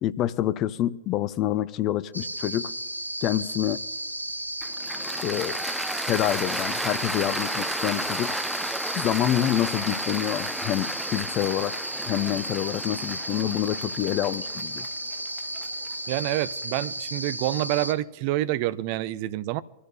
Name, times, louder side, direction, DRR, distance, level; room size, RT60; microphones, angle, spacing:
voice 1, 0.0-2.7 3.2-3.8 5.2-5.6 6.1-8.4 8.9-11.7 12.1-14.9, left 13 dB, 35° left, 0.6 m, -27 dB
sound 1, 2.1-17.9, right 1 dB, 85° right, 0.6 m, -34 dB
Cheering / Applause, 4.6-16.8, right 1 dB, 5° right, 0.7 m, -33 dB
voice 2, 16.1-19.6, right 15 dB, 45° right, 0.5 m, -27 dB
25.5 x 14.5 x 2.4 m
figure-of-eight pair, 90°, 0 cm